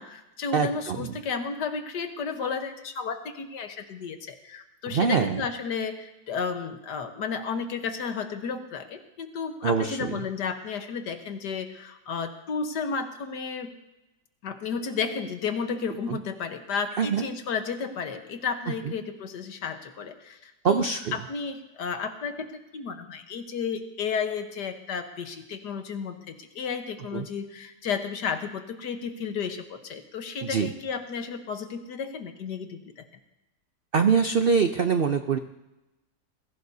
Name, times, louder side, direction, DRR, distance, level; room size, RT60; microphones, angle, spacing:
voice 1, 0.0-13.7 14.4-33.1, left 5 dB, 70° left, 6 dB, 1.8 m, -33 dB
voice 2, 0.5-1.1 4.9-5.4 9.6-10.2 16.1-16.2 17.0-17.2 18.8-18.9 20.6-21.2 27.1-27.3 30.4-30.7 33.9-35.4, right 6 dB, 80° right, 8 dB, 0.5 m, -24 dB
21.5 x 16.0 x 2.8 m, 0.98 s
omnidirectional pair, 1.9 m